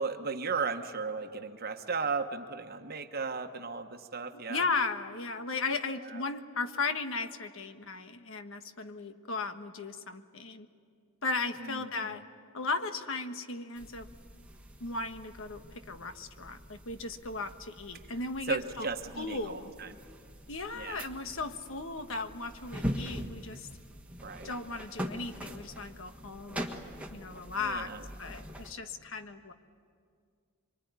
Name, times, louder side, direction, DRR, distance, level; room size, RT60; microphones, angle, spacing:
voice 1, 0.0-4.6 6.1-6.2 11.6-12.2 18.5-20.0 20.7-21.0 24.2-24.5 27.6-28.1, right 4 dB, 45° right, 7 dB, 1.2 m, -36 dB
voice 2, 4.5-10.7 11.2-12.2 12.5-14.1 14.8-15.6 15.9-18.9 19.2-19.7 20.5-23.7 24.4-26.8 27.1-27.9 28.2-29.5, left 3 dB, 65° left, 8 dB, 1.4 m, -36 dB
sound 1, 13.8-28.7, equal, 5° right, 1.6 m, -43 dB
25.0 x 24.5 x 9.6 m, 2.1 s
head